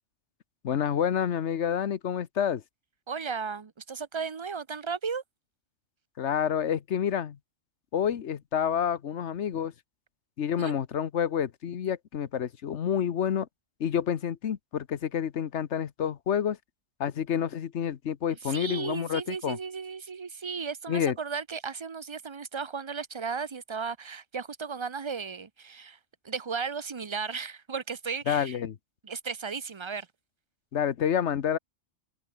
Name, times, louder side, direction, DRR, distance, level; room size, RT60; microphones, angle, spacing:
voice 1, 0.6-2.6 6.2-7.4 7.9-9.7 10.4-13.5 13.8-16.6 17.0-19.6 20.9-21.1 28.3-28.8 30.7-31.6, left 8 dB, 85° left, 1.3 m, -28 dB
voice 2, 3.1-5.2 10.6-10.7 18.4-26.0 26.2-28.6 29.0-30.1, right 5 dB, 30° right, 0.7 m, -35 dB
omnidirectional pair, 1.2 m